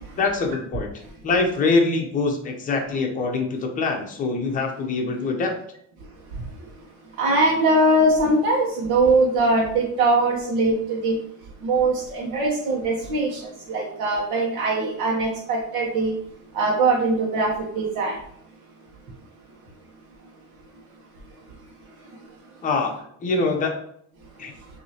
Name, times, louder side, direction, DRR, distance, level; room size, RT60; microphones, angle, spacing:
voice 1, 0.2-0.9 1.2-5.5 22.6-22.9 23.2-23.7 24.4-24.5, left 3 dB, 25° left, 2 dB, 0.7 m, -24 dB
voice 2, 7.2-11.2 11.6-13.4 13.7-16.1 16.5-18.1, right 2 dB, 75° right, -4 dB, 1.1 m, -21 dB
5.9 x 2.7 x 2.9 m, 0.67 s
cardioid pair, 175°, 29 cm